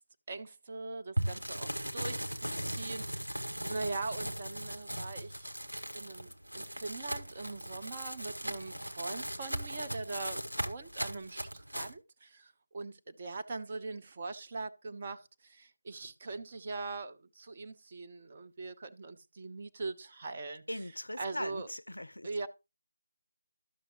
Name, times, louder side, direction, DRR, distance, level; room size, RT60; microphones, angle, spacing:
voice 1, 0.3-1.0 1.6-1.7 1.9-2.1 2.8-3.0 3.7-5.3 6.0-6.1 6.6-11.3 11.7-12.0 12.7-12.9 13.2-15.2 15.9-17.1 17.6-18.7 19.0-19.9 20.2-20.6 21.2-21.7 22.2-22.5, right 3 dB, 30° right, 0.7 m, -40 dB
sound 1, 1.2-11.9, equal, 80° right, 1.4 m, -38 dB
voice 2, 20.7-22.3, left 1 dB, 75° left, 0.4 m, -40 dB
12.5 x 6.4 x 3.0 m
figure-of-eight pair, 160°, 0 cm